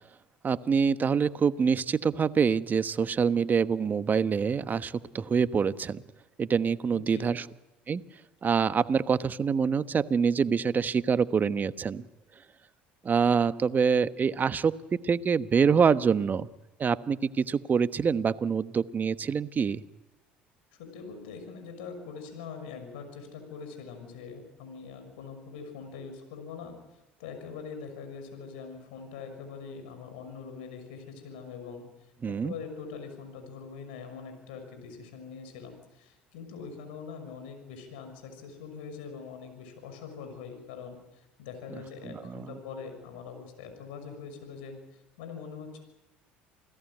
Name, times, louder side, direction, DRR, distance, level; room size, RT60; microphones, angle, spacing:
voice 1, 0.4-6.0 6.4-7.4 7.9-8.0 8.4-12.0 13.0-14.7 15.0-16.5 16.8-19.8 32.2-32.5 42.0-42.6, right 6 dB, 35° right, 13 dB, 1.1 m, -25 dB
voice 2, 6.9-7.3 20.8-45.8, left 5 dB, 75° left, 7 dB, 6.2 m, -43 dB
28.0 x 17.5 x 9.3 m, 0.98 s
hypercardioid pair, 70°, 5 cm